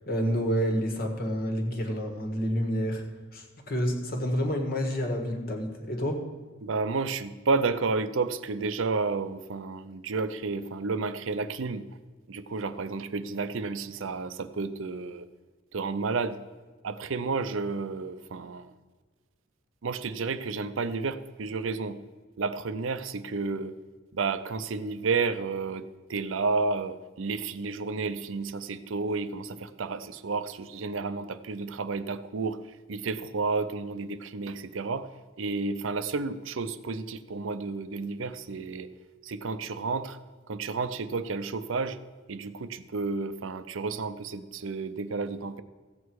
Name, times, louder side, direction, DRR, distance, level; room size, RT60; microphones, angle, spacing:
voice 1, 0.1-3.0 3.3-6.2, equal, 50° left, 4 dB, 1.7 m, -29 dB
voice 2, 6.6-11.9 12.3-15.3 15.7-16.4 16.8-18.7 19.8-22.0 22.4-23.7 24.1-25.8 26.1-32.6 32.9-35.1 35.4-38.9 39.2-40.2 40.5-42.0 42.3-45.6, right 4 dB, 70° right, 12 dB, 0.6 m, -31 dB
14.5 x 8.3 x 4.7 m, 1.4 s
head